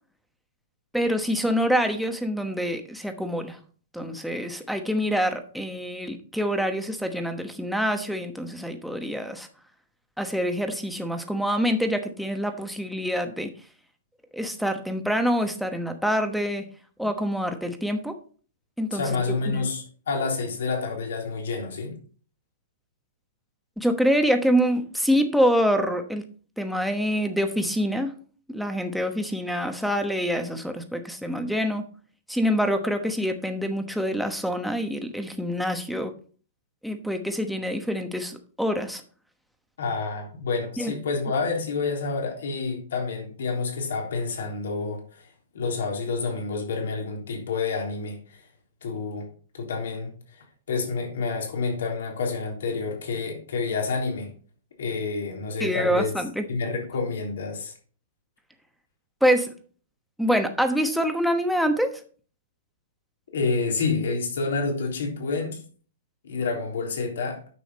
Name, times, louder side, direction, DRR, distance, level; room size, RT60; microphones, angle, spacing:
voice 1, 0.9-3.6 3.9-9.5 10.2-13.5 14.3-16.6 17.0-18.1 18.8-19.2 19.5-19.7 23.8-26.3 26.6-28.1 28.5-31.8 32.3-36.1 36.8-39.0 40.8-40.9 55.6-56.4 59.2-59.5 60.2-62.0, equal, ahead, 1.0 m, -26 dB
voice 2, 18.9-22.0 39.8-45.3 45.5-48.4 48.8-49.3 49.5-54.3 54.8-56.1 56.5-57.7 63.3-65.6 66.2-67.4, left 4 dB, 75° left, 3.5 m, -28 dB
9.5 x 6.3 x 4.2 m
hypercardioid pair, 150°, 0 cm